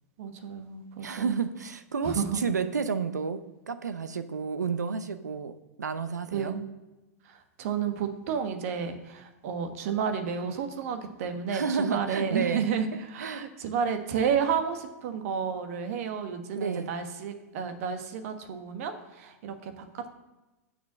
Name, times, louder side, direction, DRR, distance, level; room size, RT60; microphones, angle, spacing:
voice 1, 0.2-1.4 2.0-2.4 6.3-6.7 7.3-20.1, right 7 dB, 55° right, 7 dB, 1.3 m, -31 dB
voice 2, 1.0-6.6 11.5-12.6 13.2-13.5 16.5-16.9, right 5 dB, 85° right, 11 dB, 0.7 m, -31 dB
6.6 x 6.2 x 7.3 m, 1.1 s
hypercardioid pair, 105°, 9 cm